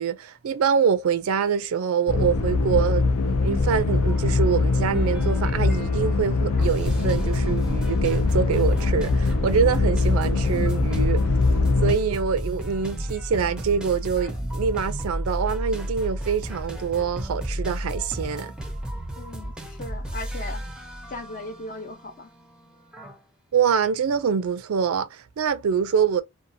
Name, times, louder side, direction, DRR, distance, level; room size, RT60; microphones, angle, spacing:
voice 1, 0.0-11.2 11.8-18.5 23.5-26.2, right 6 dB, 75° right, 0.4 m, -25 dB
sound 1, 2.1-11.9, left 3 dB, 80° left, 0.5 m, -22 dB
sound 2, 4.0-23.2, equal, 5° right, 0.5 m, -33 dB
voice 2, 19.2-20.7 21.1-22.3, left 2 dB, 40° left, 0.7 m, -37 dB
2.7 x 2.3 x 2.6 m
head